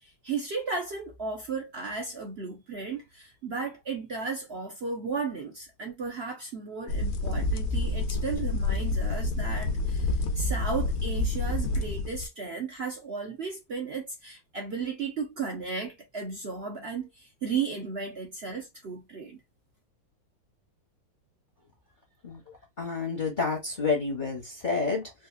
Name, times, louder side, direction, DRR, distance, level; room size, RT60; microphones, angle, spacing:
voice 1, 0.0-19.4, right 5 dB, 55° right, 0.6 m, -35 dB
sound 1, 6.9-12.3, left 2 dB, 85° left, 1.5 m, -28 dB
voice 2, 22.2-25.1, left 4 dB, 35° left, 0.7 m, -29 dB
4.1 x 2.5 x 2.4 m
omnidirectional pair, 2.2 m